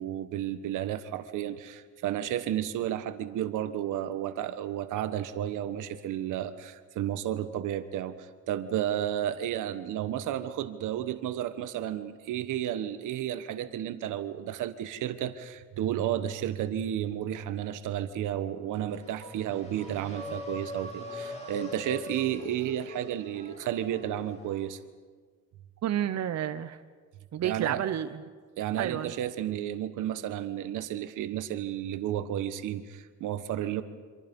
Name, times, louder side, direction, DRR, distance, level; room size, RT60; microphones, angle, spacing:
voice 1, 0.0-24.8 27.4-27.8 28.6-33.8, right 11 dB, 90° right, 11 dB, 1.4 m, -32 dB
sound 1, 18.9-24.7, left 1 dB, 20° left, 6.6 m, -42 dB
voice 2, 25.8-26.8 27.3-28.2 28.8-29.1, right 10 dB, 60° right, 10 dB, 1.0 m, -30 dB
26.5 x 26.0 x 5.4 m, 1.5 s
cardioid pair, 90°, 30 cm